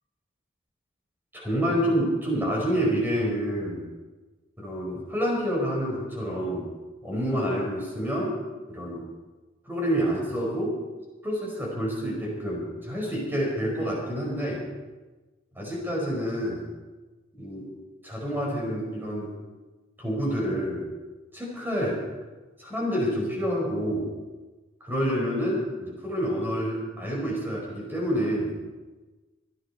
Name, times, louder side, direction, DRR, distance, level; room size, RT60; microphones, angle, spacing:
voice 1, 1.5-3.9 4.6-6.7 7.0-8.4 8.7-9.0 9.7-10.8 11.2-14.6 15.6-16.6 17.4-17.7 18.0-19.3 20.0-20.8 21.3-22.0 22.6-24.1 24.8-28.6, equal, 10° right, -3 dB, 5.2 m, -28 dB
25.5 x 9.5 x 4.4 m, 1.2 s
head